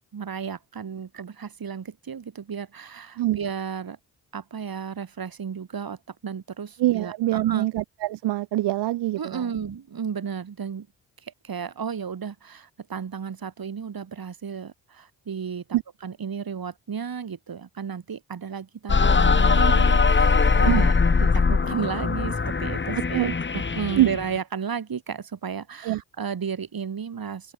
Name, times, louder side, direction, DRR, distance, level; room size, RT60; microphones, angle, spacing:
voice 1, 0.1-4.0 4.3-7.7 9.2-10.9 11.2-15.6 16.0-27.5, right 6 dB, 60° right, 7.8 m, -33 dB
voice 2, 6.8-9.4 15.7-15.8 20.7-20.8 23.1-23.3 24.0-24.1 25.8-26.0, right 15 dB, 85° right, 0.7 m, -24 dB
sound 1, 18.9-24.4, left 4 dB, 30° left, 1.4 m, -21 dB
open air
cardioid pair, 60°, 40 cm